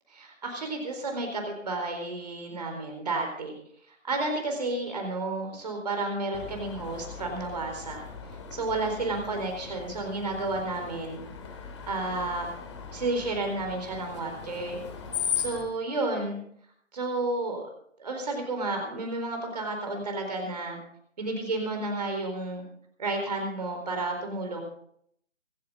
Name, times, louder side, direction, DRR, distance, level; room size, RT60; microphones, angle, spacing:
voice 1, 0.1-3.5 4.0-8.0 8.5-11.2 11.9-12.5 12.9-14.8 15.3-16.4 16.9-17.6 18.0-20.8 21.2-22.6 23.0-24.6, right 2 dB, 35° right, 3 dB, 4.2 m, -31 dB
Screech, 6.3-15.6, left 7 dB, 25° left, 2.7 m, -38 dB
25.5 x 10.5 x 3.8 m, 0.65 s
figure-of-eight pair, 150°, 38 cm